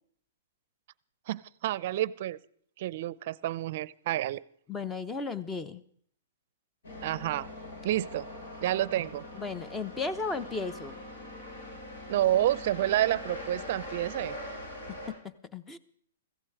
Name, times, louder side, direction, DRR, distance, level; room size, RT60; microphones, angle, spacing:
voice 1, 1.3-2.4 2.8-4.4 7.0-7.5 7.8-8.3 8.6-9.2 12.1-14.3, right 13 dB, 50° right, 22 dB, 0.5 m, -29 dB
voice 2, 4.7-5.8 9.3-10.9 14.9-15.8, left 4 dB, 10° left, 13 dB, 0.8 m, -35 dB
sound 1, 6.8-15.1, left 1 dB, 70° left, 6.5 m, -42 dB
15.5 x 15.0 x 4.9 m, 0.64 s
hypercardioid pair, 145°, 0 cm